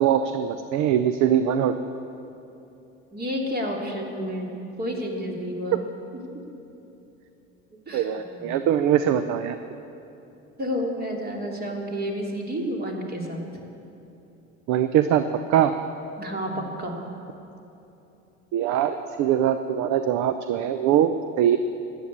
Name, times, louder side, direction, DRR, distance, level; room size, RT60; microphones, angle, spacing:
voice 1, 0.0-1.7 5.7-5.8 7.9-9.6 14.7-15.2 15.5-15.7 18.5-21.1 21.4-21.6, right 10 dB, 45° right, 10 dB, 0.7 m, -22 dB
voice 2, 3.1-4.5 4.8-5.8 7.9-8.6 10.6-13.4 16.2-16.9, equal, 25° right, 0 dB, 2.9 m, -30 dB
13.5 x 9.1 x 8.4 m, 2.9 s
hypercardioid pair, 80°, 39 cm